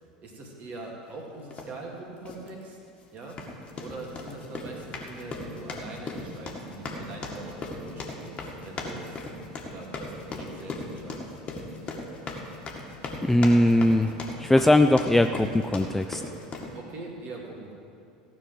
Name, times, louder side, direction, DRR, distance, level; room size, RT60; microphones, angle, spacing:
voice 1, 0.0-2.8 3.1-3.4 3.8-9.3 9.7-11.3 16.7-17.7, right 2 dB, 40° right, 0 dB, 2.5 m, -42 dB
sound 1, 1.5-1.7 2.2-2.5 3.2-16.8, left 2 dB, 30° left, 1.9 m, -37 dB
voice 2, 13.2-14.1 14.4-16.2, left 1 dB, 5° left, 8 dB, 0.4 m, -20 dB
15.5 x 6.0 x 7.7 m, 2.4 s
figure-of-eight pair, 75°, 4 cm